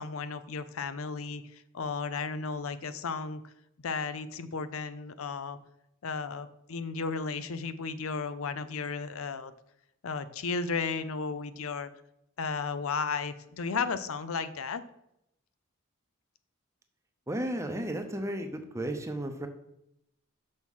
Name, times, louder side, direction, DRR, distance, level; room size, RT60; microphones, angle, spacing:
voice 1, 0.0-3.4 3.8-5.6 6.0-9.5 10.0-11.9 12.4-14.8, left 4 dB, 75° left, 13 dB, 0.6 m, -34 dB
voice 2, 17.3-19.5, right 1 dB, 15° right, 6 dB, 0.8 m, -34 dB
6.4 x 6.1 x 5.4 m, 0.80 s
head